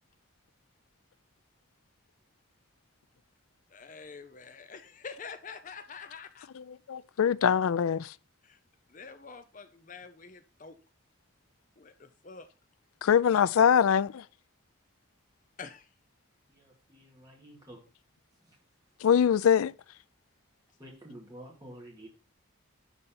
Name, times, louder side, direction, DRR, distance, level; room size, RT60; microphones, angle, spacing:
voice 1, 3.7-6.5 8.4-8.6 8.9-10.7 11.8-12.5 15.6-15.9, left 5 dB, 40° left, 0.6 m, -46 dB
voice 2, 6.6-8.1 13.0-14.2 19.0-19.7, left 8 dB, 90° left, 0.4 m, -23 dB
voice 3, 16.5-17.8 18.5-18.6 20.8-22.1, right 1 dB, 15° right, 2.3 m, -49 dB
11.0 x 4.1 x 5.5 m
head